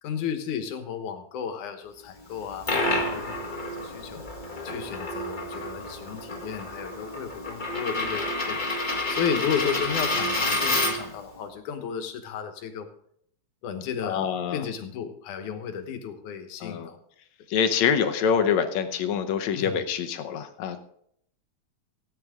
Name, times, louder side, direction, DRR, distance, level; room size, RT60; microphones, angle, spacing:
voice 1, 0.0-4.2 4.6-8.6 9.1-12.9 13.6-17.0 19.5-19.9, left 7 dB, 90° left, 7 dB, 2.7 m, -33 dB
Coin (dropping), 2.3-11.2, left 2 dB, 35° left, 0.7 m, -29 dB
voice 2, 14.0-14.6 16.6-16.9 17.5-20.8, left 7 dB, 75° left, 8 dB, 2.1 m, -25 dB
17.0 x 9.4 x 3.7 m, 0.69 s
omnidirectional pair, 3.4 m